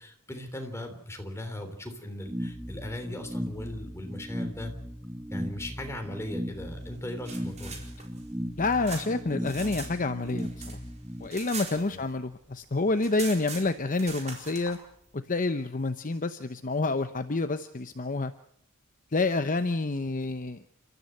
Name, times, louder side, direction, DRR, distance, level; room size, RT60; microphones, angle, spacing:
voice 1, 0.0-4.7 5.3-7.8 11.9-12.0, left 1 dB, 10° left, 4 dB, 3.5 m, -38 dB
sound 1, 2.3-11.3, equal, 15° right, 1.8 m, -37 dB
sound 2, 7.0-9.9 10.2-12.4 12.6-12.7 13.0-14.8, right 5 dB, 30° right, 4.4 m, -41 dB
voice 2, 8.6-10.5 11.2-14.8 15.1-18.3 19.1-20.7, left 3 dB, 35° left, 9 dB, 0.8 m, -28 dB
30.0 x 14.0 x 7.9 m, 0.71 s
head